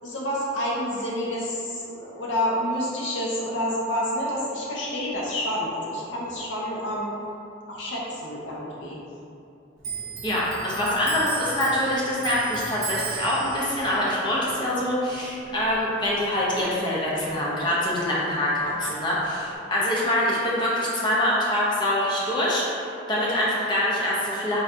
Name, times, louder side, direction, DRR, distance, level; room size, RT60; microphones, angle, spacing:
voice 1, 0.0-7.1 7.7-9.0 18.7-18.9, equal, 70° left, -5 dB, 0.7 m, -28 dB
Clock, 9.8-16.8 17.1-18.4 18.7-19.6, right 6 dB, 80° right, 0.6 m, -37 dB
voice 2, 10.2-24.6, left 1 dB, 25° left, -7 dB, 0.5 m, -25 dB
4.2 x 2.3 x 2.5 m, 2.6 s
head